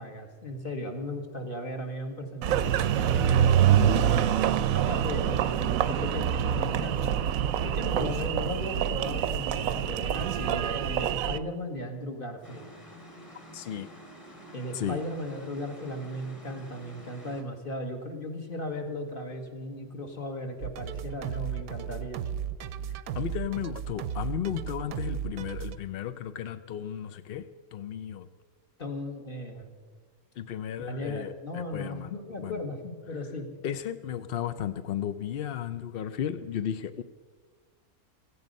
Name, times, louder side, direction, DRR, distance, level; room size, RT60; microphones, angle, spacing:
voice 1, 0.0-4.1 4.7-7.2 7.6-12.7 14.5-22.2 28.8-29.7 30.9-33.5, left 1 dB, 35° left, 3 dB, 1.9 m, -36 dB
Engine, 2.4-11.4, right 9 dB, 70° right, 1.0 m, -25 dB
sound 1, 12.4-17.4, equal, 15° left, 2.0 m, -48 dB
voice 2, 13.5-13.9 14.7-15.0 23.1-28.3 30.4-32.6 33.1-33.2 33.6-37.0, left 10 dB, 65° left, 11 dB, 0.5 m, -34 dB
sound 2, 20.6-25.8, right 8 dB, 90° right, 1.2 m, -35 dB
16.5 x 15.0 x 5.3 m, 1.5 s
omnidirectional pair, 1.5 m